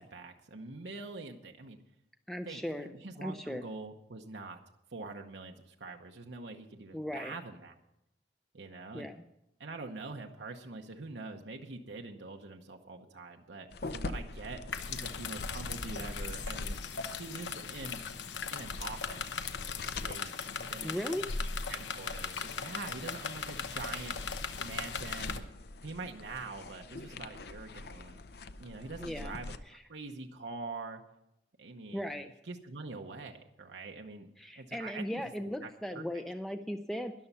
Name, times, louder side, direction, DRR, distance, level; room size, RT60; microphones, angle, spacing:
voice 1, 0.0-1.8 2.4-4.6 4.9-7.7 8.5-9.1 9.6-14.6 14.9-16.8 17.2-18.0 18.5-19.4 19.7-21.1 21.6-25.5 25.8-28.2 28.6-29.5 29.9-31.0 31.6-32.1 32.4-34.3 34.6-35.2 35.6-36.0, right 3 dB, 80° right, 3 dB, 0.9 m, -44 dB
voice 2, 2.3-2.9 3.2-3.6 6.9-7.3 8.9-9.2 20.8-21.2 29.0-29.4 29.7-29.8 31.9-32.3 34.4-37.1, equal, ahead, 6 dB, 0.5 m, -37 dB
sound 1, 13.7-29.6, left 2 dB, 65° left, 0.6 m, -43 dB
sound 2, 14.7-25.4, left 6 dB, 85° left, 1.0 m, -39 dB
13.0 x 11.0 x 5.6 m, 0.85 s
head